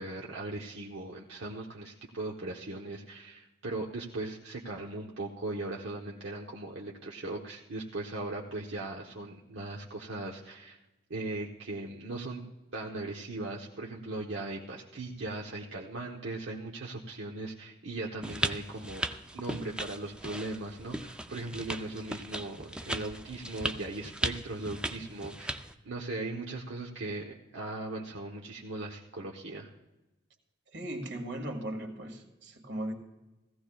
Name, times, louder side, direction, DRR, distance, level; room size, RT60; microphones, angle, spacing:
voice 1, 0.0-10.8 11.1-12.4 12.7-29.7, right 2 dB, 80° right, -2 dB, 1.0 m, -39 dB
sound 1, 18.2-25.7, right 1 dB, 5° right, 0.4 m, -37 dB
voice 2, 30.7-32.9, right 1 dB, 65° right, 4 dB, 1.9 m, -37 dB
17.5 x 15.0 x 2.3 m, 1.0 s
head